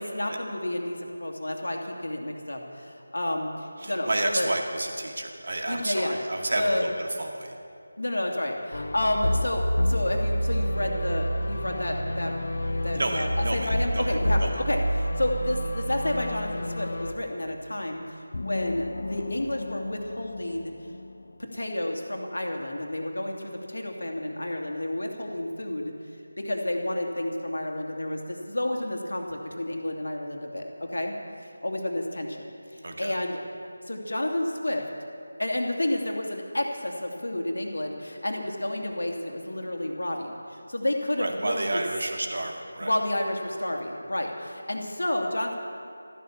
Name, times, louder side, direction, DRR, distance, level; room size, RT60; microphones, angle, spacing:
voice 1, 0.0-4.5 5.7-6.2 6.5-6.9 8.0-12.3 12.8-20.7 21.4-25.9 26.4-31.1 31.4-33.4 33.9-34.8 35.4-41.8 42.8-45.6, left 1 dB, 85° left, 2 dB, 2.7 m, -30 dB
voice 2, 3.8-7.6 12.9-14.6 32.8-33.2 41.2-42.9, right 2 dB, 60° right, 3 dB, 2.2 m, -31 dB
sound 1, 8.7-17.1, equal, 65° left, 1.2 m, -28 dB
sound 2, 18.3-21.9, left 3 dB, 50° left, 0.7 m, -37 dB
13.5 x 13.5 x 7.3 m, 2.6 s
figure-of-eight pair, 170°, 0 cm